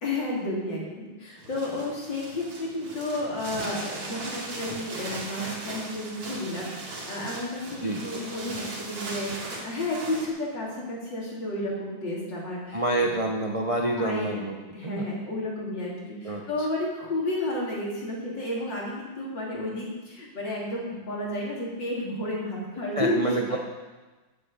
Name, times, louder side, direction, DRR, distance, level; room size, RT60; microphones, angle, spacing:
voice 1, 0.0-13.1 13.8-14.4 14.7-23.6, left 1 dB, 55° left, -4 dB, 3.7 m, -32 dB
sound 1, 1.4-10.3, right 2 dB, 70° right, 2.9 m, -38 dB
voice 2, 12.7-14.6 14.8-15.1 16.2-16.7 23.0-23.6, right 2 dB, 55° right, 0 dB, 0.3 m, -27 dB
8.9 x 8.2 x 8.2 m, 1.2 s
omnidirectional pair, 2.3 m